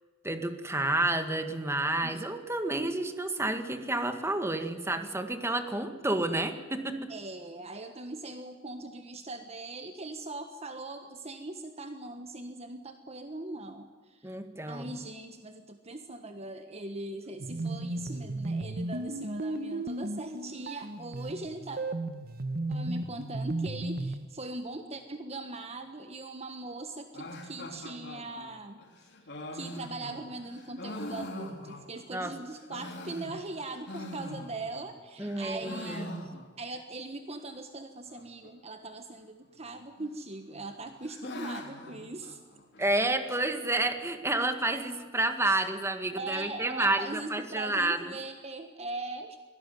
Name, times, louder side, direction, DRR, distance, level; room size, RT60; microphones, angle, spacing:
voice 1, 0.2-7.1 14.2-14.9 32.1-32.3 35.2-36.2 42.8-48.1, right 2 dB, 15° right, 7 dB, 2.0 m, -30 dB
voice 2, 7.1-14.3 14.7-21.8 22.7-28.8 29.5-36.1 36.6-42.4 46.1-49.4, right 2 dB, 35° right, 7 dB, 1.4 m, -40 dB
sound 1, 17.4-24.3, right 2 dB, 55° right, 1.3 m, -35 dB
sound 2, 27.1-32.1 32.5-34.9 35.2-36.8 37.0-37.1 37.3-37.4 38.1-38.5 39.5-40.1 40.5-42.9, left 1 dB, 65° left, 3.9 m, -43 dB
24.5 x 18.0 x 9.3 m, 1.5 s
head